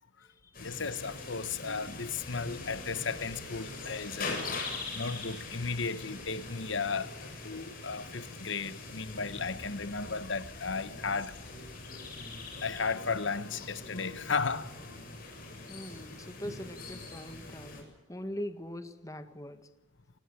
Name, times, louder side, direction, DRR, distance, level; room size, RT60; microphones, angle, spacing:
sound 1, 0.5-17.8, left 3 dB, 45° left, 7.5 m, -42 dB
voice 1, 0.6-4.4 4.9-11.3 12.6-14.7, left 4 dB, 70° left, 1.2 m, -35 dB
voice 2, 15.7-19.6, left 1 dB, 15° left, 1.7 m, -41 dB
29.0 x 20.0 x 7.8 m
head